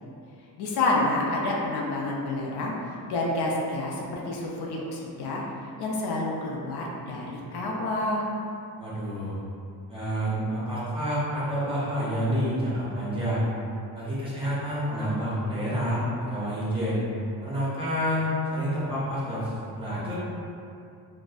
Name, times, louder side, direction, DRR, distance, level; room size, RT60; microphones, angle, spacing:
voice 1, 0.6-2.8 3.1-5.4 5.8-8.3, left 2 dB, 80° left, -2 dB, 0.5 m, -28 dB
voice 2, 8.8-9.4 9.9-13.4 13.9-17.0 17.4-20.1, equal, 15° right, -10 dB, 0.5 m, -28 dB
2.6 x 2.1 x 2.3 m, 2.6 s
cardioid pair, 165°, 39 cm